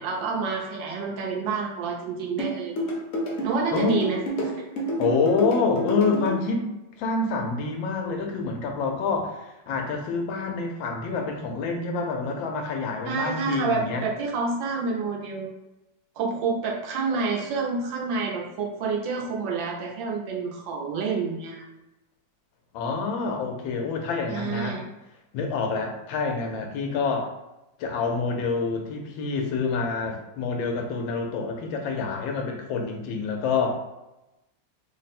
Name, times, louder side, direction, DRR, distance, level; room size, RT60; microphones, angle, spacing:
voice 1, 0.0-2.9 3.4-4.2 4.5-4.6 13.0-15.5 16.2-21.6 24.3-24.9, right 4 dB, 80° right, -1 dB, 1.5 m, -28 dB
sound 1, 2.4-6.4, equal, 55° left, 0.8 m, -28 dB
voice 2, 3.7-4.0 5.0-6.7 7.0-14.1 22.7-24.8 25.3-27.3 27.8-33.7, left 4 dB, 85° left, 2 dB, 1.4 m, -27 dB
3.7 x 2.1 x 4.1 m, 0.98 s
omnidirectional pair, 2.0 m